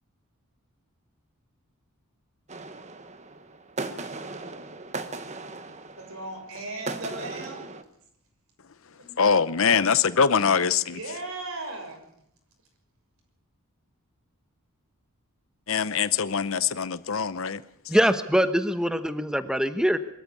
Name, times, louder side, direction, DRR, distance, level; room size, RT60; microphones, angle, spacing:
sound 1, 2.5-7.8, right 3 dB, 30° right, 1.2 m, -38 dB
voice 1, 6.0-7.7 8.9-9.5 10.3-12.0, right 2 dB, 70° right, 3 dB, 6.3 m, -38 dB
voice 2, 9.2-11.0 15.7-17.6, left 6 dB, 60° left, 15 dB, 0.8 m, -23 dB
voice 3, 17.9-20.0, equal, 5° right, 10 dB, 1.0 m, -23 dB
23.0 x 13.5 x 8.6 m, 0.75 s
head